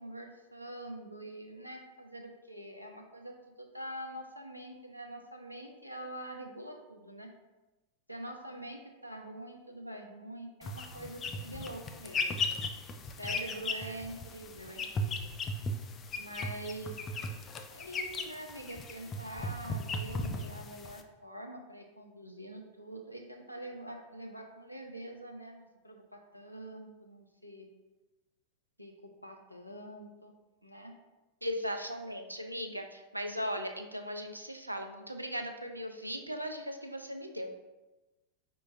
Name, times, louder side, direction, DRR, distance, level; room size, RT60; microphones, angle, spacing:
voice 1, 0.0-7.3 8.1-12.5 13.0-15.3 16.1-17.0 17.7-27.7 28.8-30.4 30.6-30.9, right 1 dB, 90° left, 2 dB, 0.6 m, -45 dB
sound 1, 10.6-21.0, left 2 dB, 25° left, 0.4 m, -37 dB
voice 2, 31.4-37.6, equal, 85° right, 5 dB, 0.4 m, -38 dB
4.8 x 3.8 x 2.5 m, 1.1 s
figure-of-eight pair, 90°, 0 cm